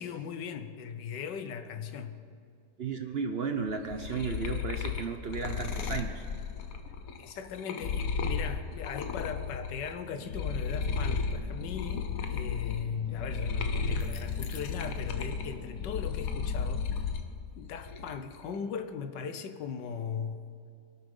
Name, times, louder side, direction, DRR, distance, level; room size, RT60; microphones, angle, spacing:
voice 1, 0.0-2.2 7.2-17.1 17.6-20.4, left 6 dB, 85° left, 1.5 m, -38 dB
voice 2, 2.8-6.2, right 5 dB, 55° right, 0.7 m, -34 dB
sound 1, 3.7-9.9 10.2-17.3 17.7-18.3, left 5 dB, 60° left, 1.2 m, -34 dB
sound 2, 10.1-17.1, left 1 dB, 10° left, 1.3 m, -48 dB
24.0 x 9.1 x 5.4 m
omnidirectional pair, 1.8 m